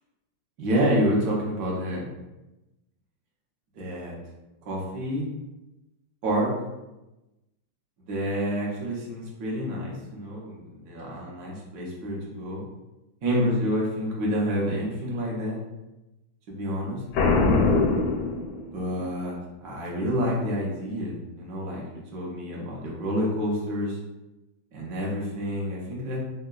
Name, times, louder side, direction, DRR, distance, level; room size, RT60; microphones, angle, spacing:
voice 1, 0.6-2.1 3.7-4.1 4.6-5.3 6.2-6.5 8.1-12.6 13.2-15.6 16.5-17.0 18.7-21.8 22.1-24.0 24.7-26.2, equal, 60° right, -4 dB, 1.0 m, -28 dB
Boom, 17.1-19.0, left 3 dB, 85° left, 1.5 m, -22 dB
3.7 x 2.2 x 2.3 m, 0.99 s
omnidirectional pair, 2.4 m